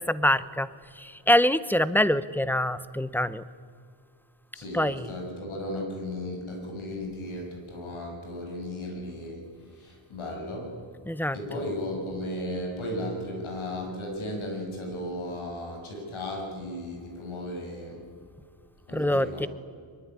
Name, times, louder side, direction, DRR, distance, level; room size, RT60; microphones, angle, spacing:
voice 1, 0.1-0.7 1.3-3.4 4.7-5.0 11.1-11.4 18.9-19.5, left 1 dB, 5° left, 15 dB, 0.7 m, -24 dB
voice 2, 4.5-9.4 9.7-10.7 11.3-18.0 18.9-19.5, left 1 dB, 90° left, 1 dB, 7.9 m, -35 dB
23.5 x 22.0 x 9.9 m, 2.3 s
wide cardioid pair, 150°, 47 cm